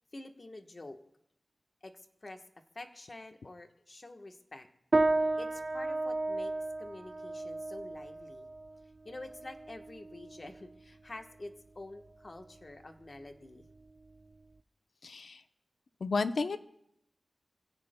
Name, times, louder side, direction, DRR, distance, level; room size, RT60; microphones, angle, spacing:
voice 1, 0.1-1.0 1.8-2.4 2.7-4.7 5.4-6.5 6.8-8.5 9.0-13.6, left 2 dB, 40° left, 5 dB, 1.2 m, -48 dB
sound 1, 4.9-14.6, right 2 dB, 50° right, 0.7 m, -35 dB
voice 2, 15.0-15.4 16.0-16.6, left 4 dB, 75° left, 10 dB, 0.7 m, -32 dB
27.5 x 16.5 x 2.2 m, 0.75 s
wide cardioid pair, 100°, 0 cm